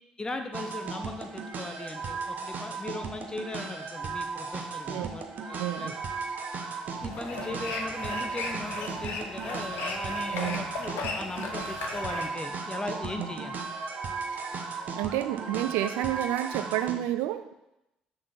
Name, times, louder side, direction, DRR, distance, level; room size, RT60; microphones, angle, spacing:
voice 1, 0.2-5.9 7.0-13.6, left 2 dB, 20° left, 6 dB, 0.9 m, -38 dB
sound 1, 0.5-16.9, right 4 dB, 45° right, 1.0 m, -36 dB
voice 2, 5.6-6.0 10.3-10.7 13.2-13.3 14.3-14.5 14.9-17.5, right 13 dB, 65° right, 11 dB, 0.4 m, -30 dB
sound 2, 6.9-12.3, left 4 dB, 60° left, 0.9 m, -37 dB
6.1 x 4.5 x 6.0 m, 0.90 s
figure-of-eight pair, 45°, 4 cm